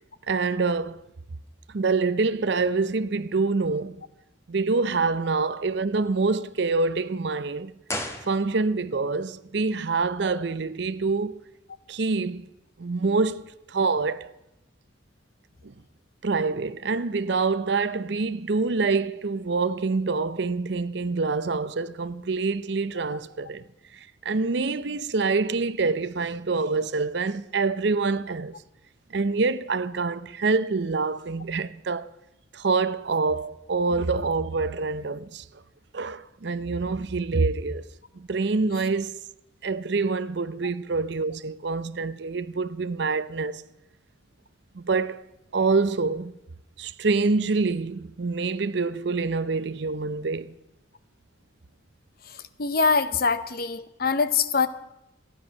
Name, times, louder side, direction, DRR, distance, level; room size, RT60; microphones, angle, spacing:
voice 1, 0.3-1.0 1.7-4.0 4.5-7.7 8.3-11.4 11.9-12.5 12.8-14.3 15.6-15.7 16.2-23.6 23.9-28.5 29.1-32.1 32.5-35.4 35.9-37.9 38.2-39.2 39.6-43.6 44.7-45.2 45.5-46.3 46.8-50.5, right 4 dB, 60° right, 0.6 m, -26 dB
sound 1, 7.8-9.0 9.2-9.3, left 1 dB, 15° left, 1.4 m, -35 dB
voice 2, 52.6-54.7, left 5 dB, 50° left, 0.7 m, -23 dB
15.0 x 10.0 x 6.4 m
head